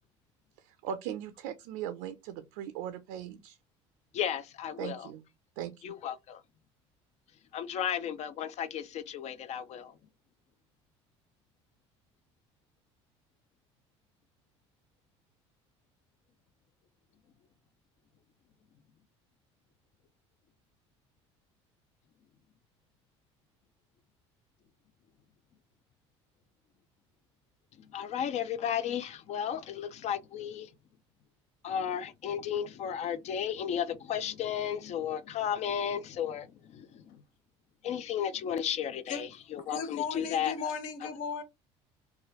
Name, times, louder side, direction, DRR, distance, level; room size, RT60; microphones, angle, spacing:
voice 1, 0.6-3.6 4.8-5.2 5.6-6.0, right 10 dB, 75° right, 0.4 m, -39 dB
voice 2, 4.1-5.1 5.8-6.4 7.5-9.9 27.9-30.7 31.6-37.2 37.8-40.7, left 9 dB, 50° left, 0.4 m, -34 dB
voice 3, 39.7-41.4, left 6 dB, 65° left, 0.8 m, -36 dB
3.1 x 2.3 x 2.9 m
hypercardioid pair, 75°, 15 cm